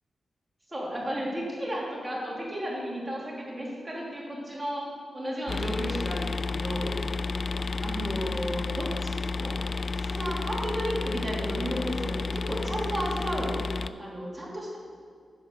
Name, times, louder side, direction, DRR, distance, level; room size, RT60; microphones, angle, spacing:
voice 1, 0.7-4.9 5.1-6.9 7.8-9.1 9.4-9.6 10.0-13.6 14.0-14.8, equal, 25° right, -4 dB, 2.9 m, -33 dB
sound 1, 5.5-13.9, left 3 dB, 50° left, 0.3 m, -31 dB
10.5 x 4.9 x 6.6 m, 2.1 s
cardioid pair, 70°, 0 cm